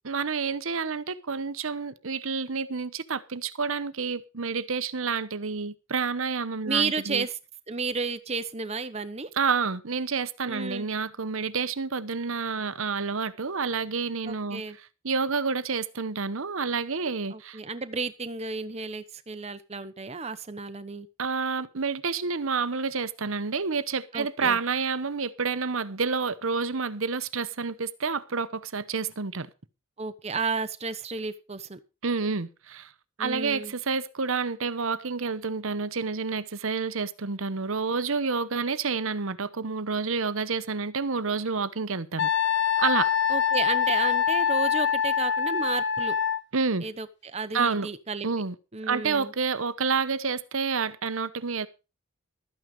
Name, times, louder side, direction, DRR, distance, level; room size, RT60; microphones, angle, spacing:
voice 1, 0.0-7.3 9.4-14.6 15.0-17.6 21.2-29.5 32.0-32.9 33.2-42.3 42.8-43.1 46.5-46.8 47.5-47.9 48.2-48.5 48.9-51.7, right 5 dB, 65° right, 0.9 m, -29 dB
voice 2, 6.6-7.4 7.7-9.3 10.5-10.9 14.3-14.8 17.3-21.1 24.1-24.6 30.0-31.8 33.2-33.7 43.3-46.2 46.8-48.3 48.7-49.3, right 4 dB, 30° right, 1.0 m, -32 dB
Wind instrument woodwind instrument, 42.2-46.4, left 7 dB, 55° left, 0.8 m, -24 dB
13.0 x 9.2 x 5.3 m
head